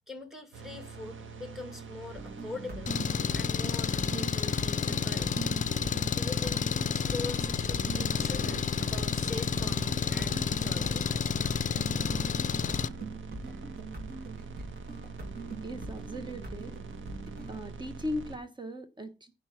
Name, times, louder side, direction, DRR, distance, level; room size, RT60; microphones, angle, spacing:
voice 1, 0.1-2.9 3.3-5.3 6.0-6.6 6.9-11.1, left 3 dB, ahead, 2.2 m, -43 dB
sound 1, 0.5-18.4, right 4 dB, 85° right, 1.4 m, -44 dB
sound 2, 2.2-17.6, right 3 dB, 50° right, 2.5 m, -42 dB
Engine, 2.9-12.9, left 7 dB, 40° left, 0.5 m, -30 dB
voice 2, 15.6-16.7 17.5-19.3, equal, 25° right, 1.0 m, -38 dB
11.0 x 4.5 x 7.3 m
cardioid pair, 105°, 20 cm